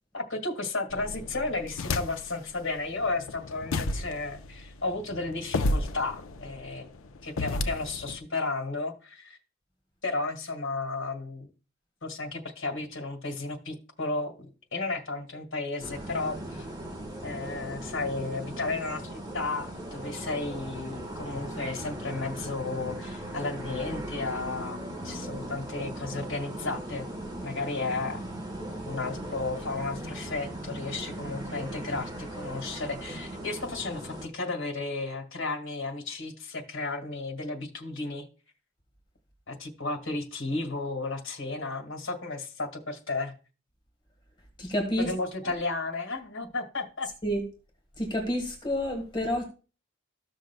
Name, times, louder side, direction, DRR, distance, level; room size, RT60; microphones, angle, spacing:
voice 1, 0.1-6.9 7.2-9.4 10.0-11.5 12.0-16.7 17.2-27.1 27.4-28.2 28.9-38.3 39.5-43.3 45.0-47.1, left 3 dB, 70° left, 1.9 m, -33 dB
sound 1, 0.9-2.4 2.9-8.2, left 2 dB, 85° left, 0.6 m, -32 dB
sound 2, 15.8-34.3, right 1 dB, 20° right, 1.4 m, -38 dB
voice 2, 44.6-45.1 47.2-47.4 48.0-49.4, equal, 25° left, 1.7 m, -29 dB
14.5 x 6.4 x 2.2 m
head